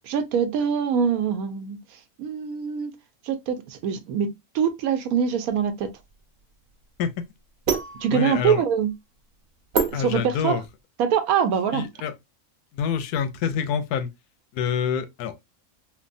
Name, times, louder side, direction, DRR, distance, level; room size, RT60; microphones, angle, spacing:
voice 1, 0.0-2.9 3.2-5.9 8.0-8.9 9.9-10.6 11.0-11.9, right 7 dB, 75° right, 1.0 m, -24 dB
sound 1, 5.7-10.8, right 5 dB, 50° right, 0.7 m, -30 dB
voice 2, 8.1-8.6 9.9-10.6 11.7-12.1 12.7-14.1 14.5-15.4, left 7 dB, 90° left, 1.1 m, -26 dB
3.3 x 2.2 x 2.5 m
omnidirectional pair, 1.6 m